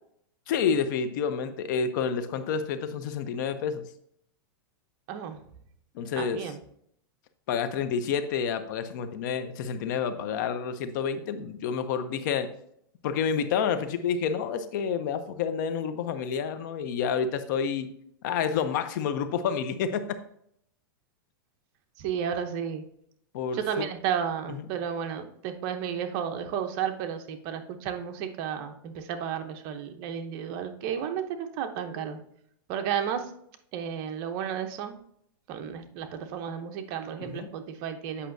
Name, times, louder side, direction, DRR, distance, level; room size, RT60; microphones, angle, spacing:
voice 1, 0.5-3.8 5.9-6.5 7.5-12.5 13.0-17.9 18.2-20.2 23.3-23.9 24.5-24.6 37.2-37.5, left 7 dB, 55° left, 11 dB, 0.7 m, -29 dB
voice 2, 5.1-5.4 6.2-6.6 22.0-22.8 23.5-32.2 32.7-33.3 33.7-34.9 35.5-38.3, right 8 dB, 45° right, 6 dB, 0.8 m, -32 dB
8.2 x 5.6 x 2.7 m, 0.69 s
supercardioid pair, 145°, 12 cm